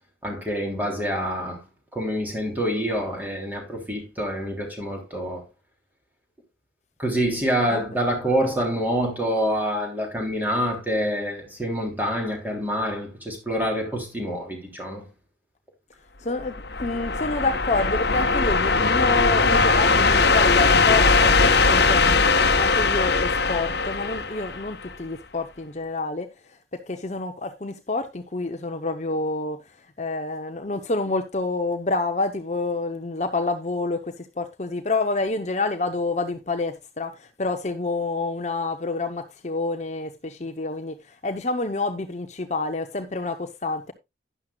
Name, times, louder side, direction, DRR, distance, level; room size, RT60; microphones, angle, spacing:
voice 1, 0.2-1.6 1.9-5.4 7.0-15.1, equal, 10° right, 3.3 m, -26 dB
voice 2, 16.2-43.9, left 3 dB, 35° left, 0.8 m, -28 dB
sound 1, 16.4-24.9, left 4 dB, 55° left, 1.2 m, -20 dB
12.0 x 10.5 x 2.3 m
head